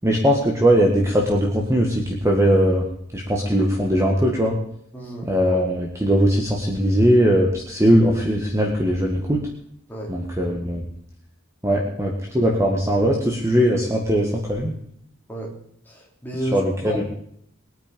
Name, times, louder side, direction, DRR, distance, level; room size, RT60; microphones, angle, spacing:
voice 1, 0.0-2.9 3.1-4.6 5.2-9.4 10.1-10.8 11.6-14.7 16.5-17.0, equal, 15° right, -1 dB, 1.7 m, -20 dB
voice 2, 4.9-5.3 9.9-10.1 11.7-11.9 15.3-15.5 15.9-17.0, right 1 dB, 10° left, -2 dB, 3.6 m, -32 dB
22.0 x 9.0 x 5.3 m, 0.69 s
head